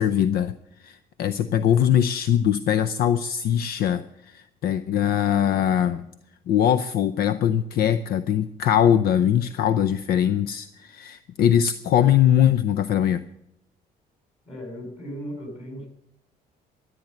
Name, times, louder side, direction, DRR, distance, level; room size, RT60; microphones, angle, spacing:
voice 1, 0.0-6.1 6.5-13.2, left 9 dB, 65° left, 14 dB, 0.6 m, -22 dB
voice 2, 14.5-15.9, equal, 35° left, 2 dB, 7.8 m, -36 dB
13.5 x 9.3 x 8.0 m, 0.81 s
cardioid pair, 110°, 17 cm